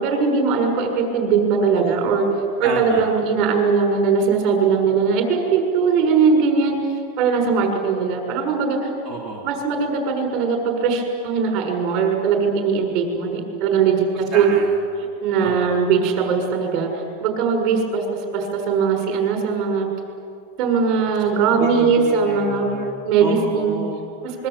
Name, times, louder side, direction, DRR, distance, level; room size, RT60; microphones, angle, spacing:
voice 1, 0.0-2.3 2.6-6.8 7.2-8.9 9.4-14.5 15.2-18.0 18.3-19.9 20.6-22.7 23.0-23.8 24.4-24.5, right 5 dB, 40° right, 3 dB, 6.4 m, -20 dB
voice 2, 2.6-3.1 9.0-9.4 14.3-14.7 15.4-15.8 21.3-22.9 23.2-24.4, right 4 dB, 10° right, -5 dB, 2.8 m, -31 dB
26.0 x 22.5 x 8.7 m, 2.4 s
supercardioid pair, 145°, 0 cm